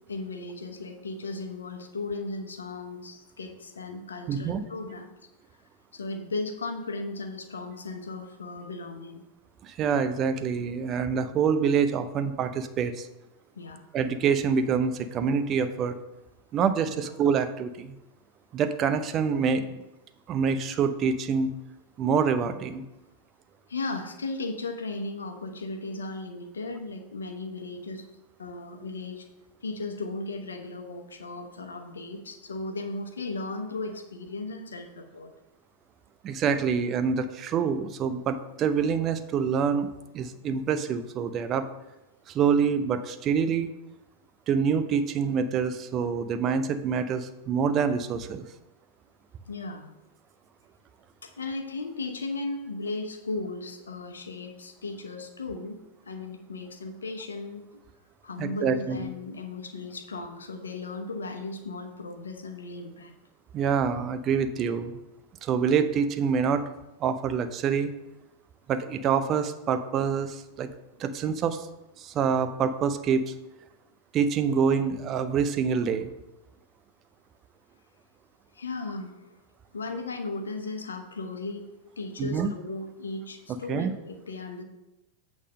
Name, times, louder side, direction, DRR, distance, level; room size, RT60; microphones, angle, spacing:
voice 1, 0.1-5.1 5.9-9.3 13.5-13.8 17.0-17.1 23.7-28.1 28.4-29.3 29.6-35.3 49.5-49.9 51.2-55.8 56.0-57.7 58.2-63.1 78.5-79.3 79.7-81.7 82.0-84.6, left 3 dB, 70° left, 5 dB, 1.0 m, -36 dB
voice 2, 4.3-4.6 9.6-13.1 13.9-16.0 16.5-17.9 18.5-19.8 20.3-21.5 22.0-22.8 36.2-39.9 40.1-41.7 42.3-43.7 44.5-48.4 58.4-59.1 63.5-65.0 65.4-66.6 67.0-67.9 68.7-70.7 71.0-71.7 72.0-73.3 74.1-76.1 82.2-82.5 83.7-83.9, right 6 dB, 30° right, 10 dB, 0.6 m, -26 dB
8.3 x 3.6 x 6.4 m, 0.96 s
figure-of-eight pair, 90°, 0 cm